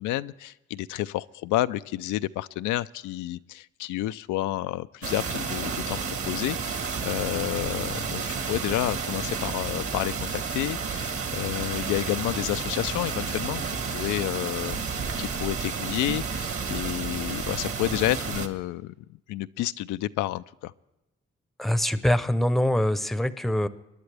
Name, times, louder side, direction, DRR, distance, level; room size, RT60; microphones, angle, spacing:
voice 1, 0.0-6.0 6.3-18.9 19.3-20.7, left 15 dB, 90° left, 12 dB, 0.5 m, -30 dB
sound 1, 5.0-18.5, right 5 dB, 50° right, 1.6 m, -31 dB
voice 2, 21.6-23.7, left 1 dB, ahead, 13 dB, 0.7 m, -24 dB
23.0 x 11.0 x 3.3 m, 0.99 s
cardioid pair, 90°, 30 cm